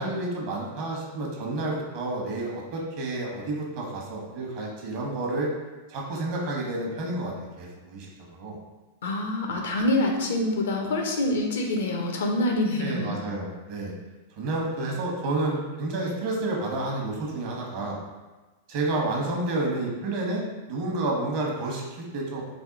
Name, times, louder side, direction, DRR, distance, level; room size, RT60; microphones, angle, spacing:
voice 1, 0.0-5.5 5.9-8.6 12.8-13.9 14.4-18.0 18.7-22.4, right 2 dB, 55° right, -1 dB, 1.0 m, -30 dB
voice 2, 9.0-13.1, left 1 dB, 75° left, 1 dB, 0.7 m, -26 dB
3.4 x 2.2 x 3.9 m, 1.2 s
hypercardioid pair, 110°, 0 cm